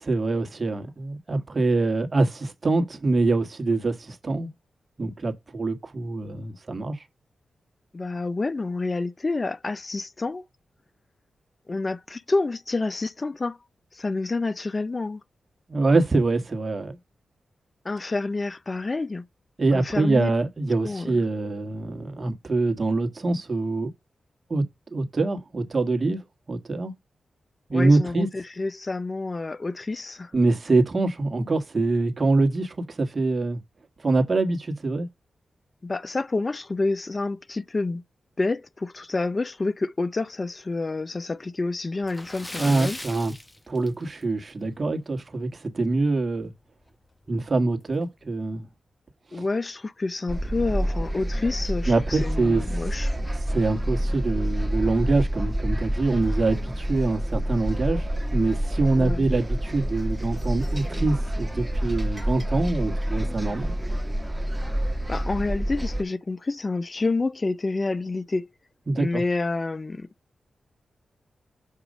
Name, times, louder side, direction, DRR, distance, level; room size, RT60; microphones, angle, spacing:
voice 1, 0.0-4.5 5.0-7.0 15.7-17.0 19.6-23.9 24.5-24.6 24.9-26.9 27.7-28.3 30.3-33.6 34.0-35.1 42.6-43.3 43.7-46.5 47.3-48.7 49.3-49.4 51.9-52.6 53.5-63.7 68.9-69.2, right 3 dB, 45° right, 1.6 m, -24 dB
voice 2, 7.9-10.5 11.7-13.6 13.9-15.2 17.8-19.3 19.7-20.3 20.8-21.2 27.7-30.3 35.8-38.0 38.4-43.0 49.3-53.1 59.0-59.3 65.1-68.5 69.0-70.1, left 3 dB, 40° left, 0.5 m, -28 dB
Splash splatter, 42.0-44.4 44.7-44.9 45.3-45.4 46.9-47.0 47.3-47.4 48.0-48.3, left 1 dB, 15° left, 1.0 m, -38 dB
sound 1, 50.3-66.0, equal, 15° right, 1.2 m, -28 dB
6.6 x 3.0 x 5.0 m
supercardioid pair, 40°, 0 cm